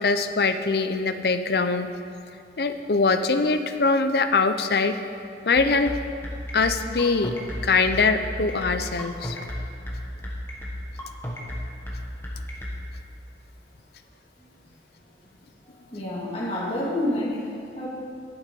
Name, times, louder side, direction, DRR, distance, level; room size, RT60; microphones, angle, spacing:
voice 1, 0.0-1.9 2.6-4.9 5.5-6.0 6.5-7.3 7.6-9.4, left 4 dB, 65° left, 9 dB, 0.5 m, -22 dB
sound 1, 5.6-12.8, left 1 dB, 15° left, 1.3 m, -33 dB
voice 2, 14.4-14.8 15.9-17.9, left 1 dB, 30° left, -6 dB, 2.1 m, -29 dB
11.5 x 7.5 x 5.3 m, 2.4 s
head